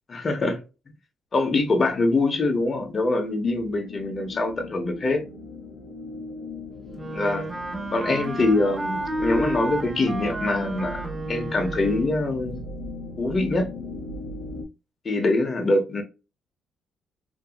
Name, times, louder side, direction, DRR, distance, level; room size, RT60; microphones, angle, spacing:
voice 1, 0.1-0.6 1.3-5.2 7.1-7.5 7.9-12.6 13.2-13.7 15.0-16.0, left 2 dB, 40° left, 0.7 m, -24 dB
sound 1, 1.5-14.6, left 1 dB, 85° left, 0.5 m, -39 dB
Wind instrument woodwind instrument, 7.0-12.3, right 1 dB, 30° right, 0.7 m, -31 dB
2.7 x 2.6 x 2.3 m
cardioid pair, 90°, 0 cm